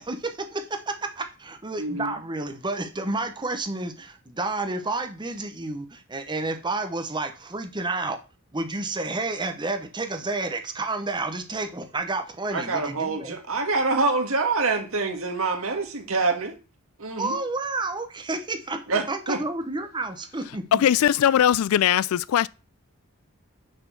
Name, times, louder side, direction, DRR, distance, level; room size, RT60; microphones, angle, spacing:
voice 1, 0.0-8.2 8.5-13.3 17.2-20.7, right 2 dB, 20° right, 0.9 m, -30 dB
voice 2, 1.8-2.1 12.5-16.6 17.0-17.4 18.9-19.4 20.7-20.8, right 3 dB, 70° right, 1.5 m, -26 dB
voice 3, 20.7-22.5, left 10 dB, 75° left, 0.3 m, -20 dB
6.4 x 4.3 x 6.0 m
head